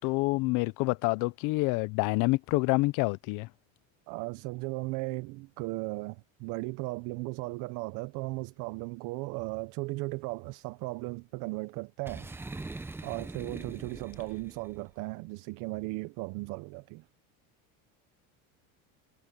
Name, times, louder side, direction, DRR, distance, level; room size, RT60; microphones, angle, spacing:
voice 1, 0.0-3.5, left 24 dB, 55° left, 0.7 m, -27 dB
voice 2, 4.1-12.3 13.0-17.0, right 24 dB, 55° right, 0.6 m, -36 dB
Boom, 12.0-14.8, right 2 dB, 5° right, 0.7 m, -42 dB
cardioid pair, 150°, 37 cm